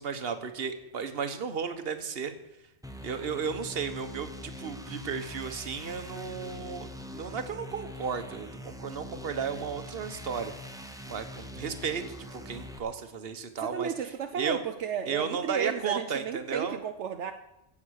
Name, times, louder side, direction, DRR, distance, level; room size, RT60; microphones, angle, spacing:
voice 1, 0.0-2.3 3.0-6.9 7.1-13.9 14.3-14.6 15.1-16.8, right 6 dB, 55° right, 9 dB, 1.3 m, -34 dB
sound 1, 2.8-12.8, left 1 dB, 5° right, 1.0 m, -43 dB
voice 2, 13.6-17.3, right 8 dB, 80° right, 7 dB, 1.1 m, -33 dB
16.0 x 7.4 x 6.4 m, 0.87 s
omnidirectional pair, 1.2 m